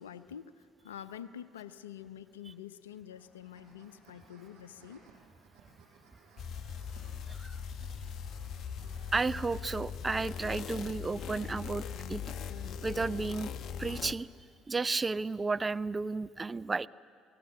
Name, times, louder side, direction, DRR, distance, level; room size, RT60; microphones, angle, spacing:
voice 1, 0.0-5.1 9.6-9.7, left 9 dB, 85° left, 13 dB, 0.7 m, -47 dB
sound 1, 3.1-9.1, right 4 dB, 75° right, 7.3 m, -60 dB
sound 2, 6.4-14.1, left 7 dB, 55° left, 1.0 m, -40 dB
voice 2, 7.3-7.6 9.1-12.3 12.8-13.5 13.8-14.3 14.7-16.9, right 3 dB, 25° right, 16 dB, 0.6 m, -33 dB
30.0 x 18.0 x 7.7 m, 2.2 s
hypercardioid pair, 60°, 0 cm